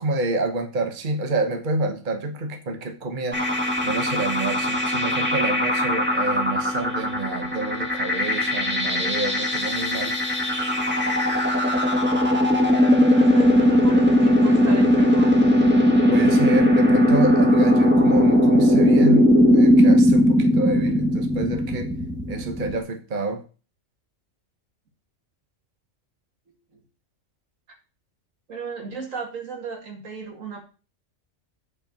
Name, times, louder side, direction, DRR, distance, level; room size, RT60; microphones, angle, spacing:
voice 1, 0.0-3.6 3.8-10.1 16.1-21.9 22.3-23.4, right 2 dB, 40° right, 6 dB, 1.3 m, -28 dB
sound 1, 3.3-22.8, left 1 dB, 10° right, 1.6 m, -19 dB
voice 2, 13.2-15.5 28.5-30.6, right 5 dB, 85° right, 2 dB, 2.6 m, -34 dB
8.9 x 4.5 x 7.0 m, 0.36 s
omnidirectional pair, 1.3 m